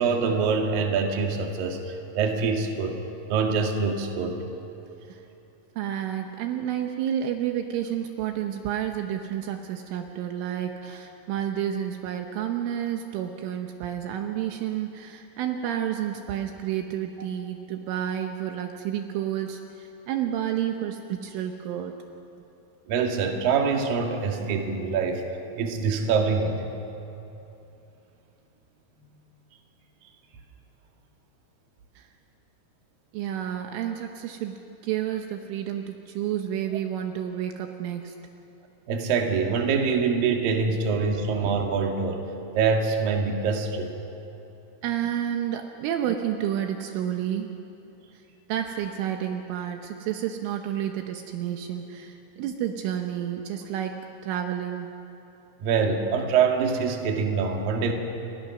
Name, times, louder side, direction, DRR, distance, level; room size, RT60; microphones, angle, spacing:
voice 1, 0.0-3.0 3.3-4.5 22.9-25.2 25.6-26.6 38.9-42.2 42.5-43.9 55.6-57.9, right 5 dB, 55° right, 2 dB, 3.3 m, -25 dB
voice 2, 5.8-22.0 32.0-32.1 33.1-34.6 34.8-38.2 44.8-47.5 48.1-48.2 48.5-54.9, right 10 dB, 80° right, 4 dB, 3.5 m, -30 dB
30.0 x 25.5 x 6.2 m, 3.0 s
omnidirectional pair, 5.9 m